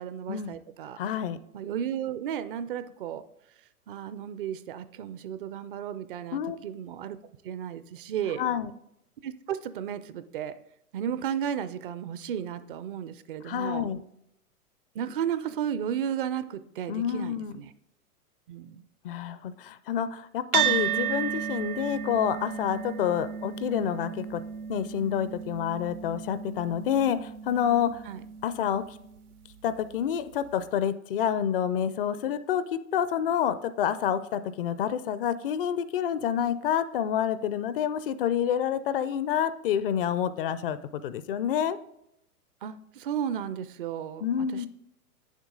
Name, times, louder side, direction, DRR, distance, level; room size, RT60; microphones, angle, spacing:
voice 1, 0.0-1.0 1.5-3.2 3.9-7.2 7.4-8.4 9.2-10.6 10.9-13.9 14.9-17.7 18.5-18.8 28.1-28.2 42.6-44.7, right 9 dB, 40° right, 13 dB, 0.5 m, -34 dB
voice 2, 1.0-1.4 6.3-6.6 8.4-8.7 13.4-14.0 16.9-17.5 19.0-24.4 24.7-28.0 28.4-29.0 29.6-41.8 44.2-44.7, left 9 dB, 40° left, 14 dB, 0.5 m, -28 dB
sound 1, 20.5-29.2, right 9 dB, 75° right, 0.9 m, -33 dB
9.1 x 7.3 x 3.7 m, 0.80 s
figure-of-eight pair, 110°, 45 cm